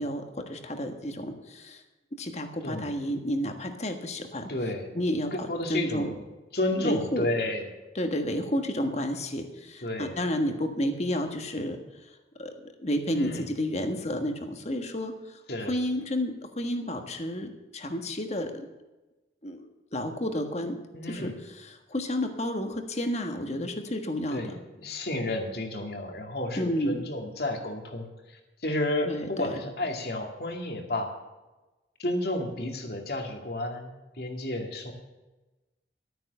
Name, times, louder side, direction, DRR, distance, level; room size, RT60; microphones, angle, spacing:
voice 1, 0.0-1.8 2.1-4.5 4.9-6.1 6.8-7.3 7.9-12.1 12.4-15.4 15.7-18.7 19.4-20.8 21.1-24.6 26.6-27.0 29.0-29.6, equal, 40° left, 6 dB, 1.5 m, -31 dB
voice 2, 4.5-4.9 5.3-6.2 6.5-7.7 9.8-10.1 13.1-13.5 15.5-15.7 20.9-21.3 24.3-24.5 24.8-31.1 32.0-34.9, left 1 dB, 60° left, 3 dB, 2.3 m, -31 dB
12.5 x 9.3 x 6.8 m, 1.1 s
head